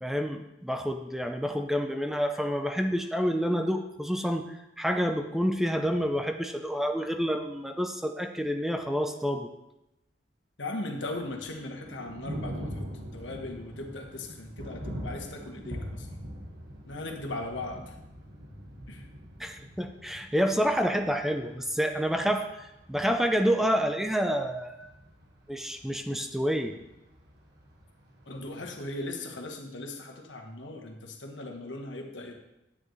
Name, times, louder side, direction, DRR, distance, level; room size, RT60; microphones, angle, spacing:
voice 1, 0.0-9.5 19.4-24.9 25.5-26.8, equal, ahead, 5 dB, 0.5 m, -28 dB
voice 2, 10.6-16.1 16.9-17.9 18.9-19.1 28.3-32.3, left 2 dB, 85° left, 3 dB, 1.3 m, -38 dB
Thunder, 11.1-29.0, equal, 60° right, 1.6 m, -43 dB
9.8 x 9.3 x 3.2 m, 0.91 s
head